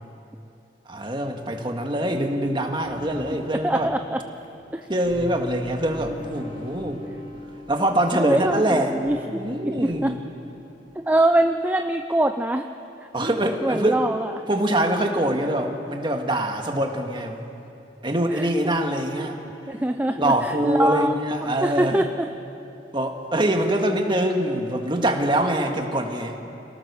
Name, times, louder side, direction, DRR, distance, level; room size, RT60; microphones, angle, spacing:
voice 1, 0.9-3.9 4.9-7.0 7.7-8.9 9.3-10.2 13.1-14.0 14.5-17.4 18.0-19.4 20.1-22.0 22.9-26.4, right 1 dB, 25° right, 3 dB, 1.8 m, -24 dB
sound 1, 2.8-11.1, equal, 40° left, 2.7 m, -41 dB
voice 2, 3.5-4.2 4.7-4.9 8.2-10.1 11.0-12.7 13.6-14.3 18.3-18.5 19.7-21.1 21.6-22.3, right 1 dB, 10° right, 6 dB, 0.5 m, -23 dB
27.5 x 18.0 x 7.0 m, 2.8 s
head